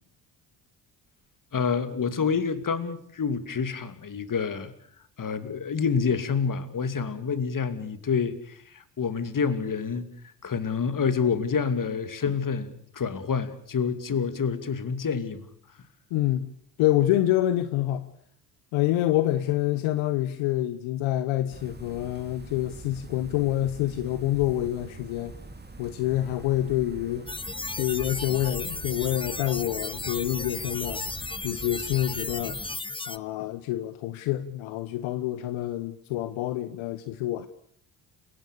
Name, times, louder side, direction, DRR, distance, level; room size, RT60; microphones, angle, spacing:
voice 1, 1.5-4.7 5.2-15.5 33.4-33.5, left 6 dB, 40° left, 11 dB, 2.7 m, -28 dB
voice 2, 16.1-16.5 16.8-18.1 18.7-25.3 25.8-27.3 27.8-31.0 31.4-32.6 33.1-37.5, left 14 dB, 70° left, 12 dB, 1.2 m, -27 dB
sound 1, 21.5-32.8, right 3 dB, 20° right, 3.3 m, -43 dB
sound 2, 27.3-33.2, left 3 dB, 10° left, 0.9 m, -35 dB
29.0 x 18.0 x 6.8 m, 0.63 s
hypercardioid pair, 55°, 49 cm